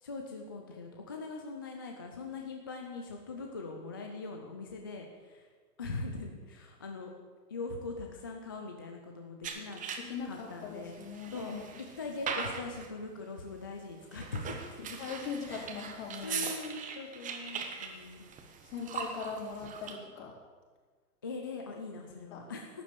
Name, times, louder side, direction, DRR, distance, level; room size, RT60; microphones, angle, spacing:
voice 1, 0.0-5.5 5.8-7.1 7.5-9.8 10.2-10.9 11.3-11.5 12.0-15.0 15.5-15.7 16.2-18.3 21.2-22.8, left 3 dB, 15° left, 2 dB, 0.3 m, -41 dB
sound 1, 9.4-10.3 10.8-12.9 14.0-20.0, right 6 dB, 15° right, 1.2 m, -40 dB
voice 2, 10.0-11.7 15.0-16.4 18.6-20.3 22.3-22.4, left 5 dB, 50° left, -2 dB, 4.8 m, -40 dB
12.0 x 8.5 x 9.1 m, 1.5 s
hypercardioid pair, 130°, 49 cm